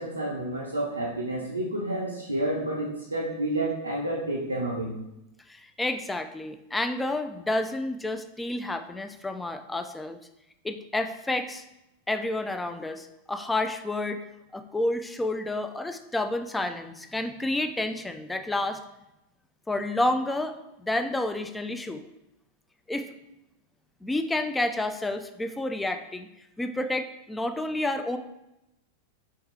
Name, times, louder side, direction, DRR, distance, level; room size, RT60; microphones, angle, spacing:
voice 1, 0.0-5.0, right 1 dB, 80° right, -3 dB, 0.5 m, -30 dB
voice 2, 5.5-10.2 10.6-11.6 12.1-14.2 14.5-18.8 19.7-22.0 22.9-23.1 24.0-26.3 26.6-28.2, left 2 dB, 10° left, 8 dB, 0.3 m, -30 dB
4.5 x 3.5 x 3.2 m, 0.89 s
figure-of-eight pair, 90°, 0 cm